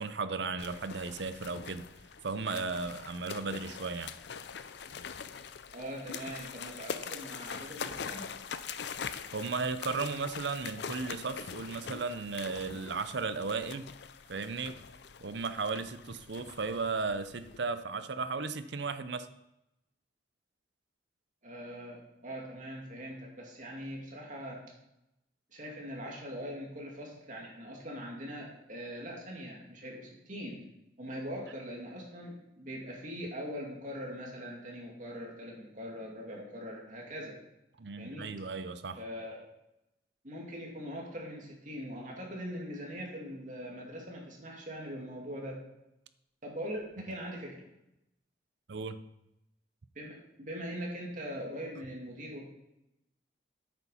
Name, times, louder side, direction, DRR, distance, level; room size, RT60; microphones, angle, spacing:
voice 1, 0.0-1.9 2.2-4.1 9.3-13.9 14.3-14.8 15.2-19.3 37.8-39.0 48.7-49.0, right 4 dB, 65° right, 11 dB, 0.6 m, -35 dB
sound 1, 0.6-17.6, left 6 dB, 60° left, 0.5 m, -43 dB
voice 2, 5.7-8.3 21.4-24.6 25.5-30.6 31.0-37.4 38.0-38.3 39.0-39.5 40.2-45.6 46.4-47.6 49.9-52.5, equal, 40° right, -2 dB, 2.5 m, -42 dB
8.8 x 7.0 x 5.7 m, 0.88 s
head